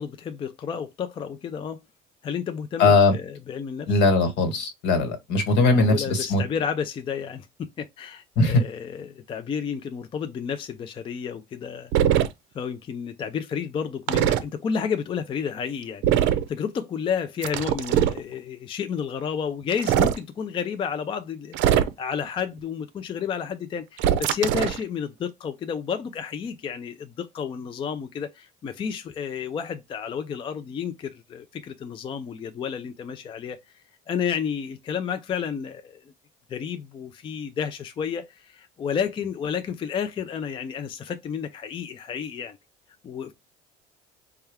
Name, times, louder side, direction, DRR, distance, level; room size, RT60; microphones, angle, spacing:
voice 1, 0.0-1.8 2.2-4.0 5.6-11.9 12.5-16.0 16.5-33.6 34.1-36.0 36.5-42.6 43.0-43.3, left 7 dB, 25° left, 0.4 m, -31 dB
voice 2, 2.8-3.1 3.9-6.4 8.3-8.6, left 3 dB, 70° left, 1.4 m, -20 dB
sound 1, 11.9-12.3 14.1-14.4 16.0-16.5 17.4-18.2 19.7-20.2 21.5-22.1 24.0-24.8, right 10 dB, 75° right, 0.5 m, -21 dB
4.3 x 2.3 x 3.4 m
cardioid pair, 130°, 19 cm